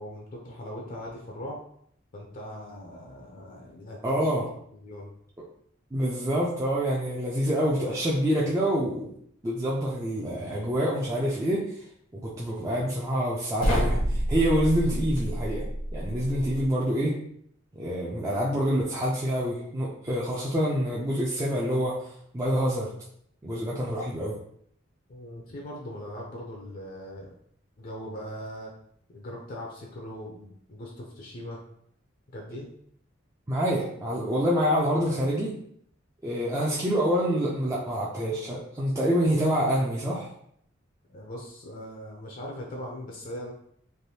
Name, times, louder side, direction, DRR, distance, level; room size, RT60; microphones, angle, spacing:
voice 1, 0.0-1.6 2.1-4.3 4.8-5.1 25.1-27.3 27.8-28.7 29.1-31.6 32.3-32.7 39.8-40.1 41.1-43.5, equal, 45° left, -1 dB, 0.5 m, -40 dB
voice 2, 4.0-4.5 5.9-9.1 9.4-11.9 12.1-15.6 15.9-17.2 17.7-22.9 23.4-24.4 33.5-35.5 36.2-40.3, equal, 15° right, -6 dB, 0.4 m, -26 dB
sound 1, 13.6-16.7, equal, 80° left, 0.9 m, -28 dB
3.3 x 2.6 x 2.7 m, 0.67 s
head